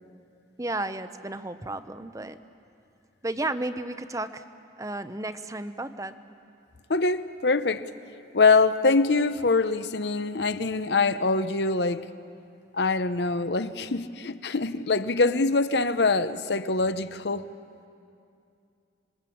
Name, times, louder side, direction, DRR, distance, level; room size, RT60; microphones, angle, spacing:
voice 1, 0.6-2.4 3.2-4.4 4.8-6.2, right 2 dB, 20° right, 0.7 m, -33 dB
voice 2, 6.9-7.9 8.3-12.1 12.7-17.5, left 3 dB, 65° left, 0.8 m, -24 dB
26.0 x 22.0 x 8.6 m
head